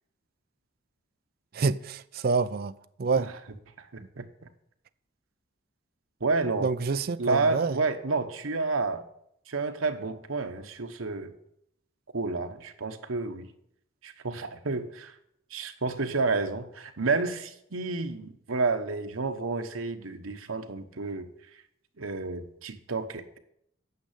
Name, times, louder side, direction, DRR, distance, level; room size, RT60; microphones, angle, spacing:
voice 1, 1.5-2.7 3.0-3.3 6.6-7.8, right 4 dB, 45° right, 0.4 m, -27 dB
voice 2, 3.8-4.3 6.2-6.7 7.2-9.0 9.5-11.3 12.1-13.5 14.0-15.1 15.5-21.3 22.0-23.4, right 3 dB, 85° right, 1.0 m, -30 dB
9.4 x 6.6 x 8.2 m
head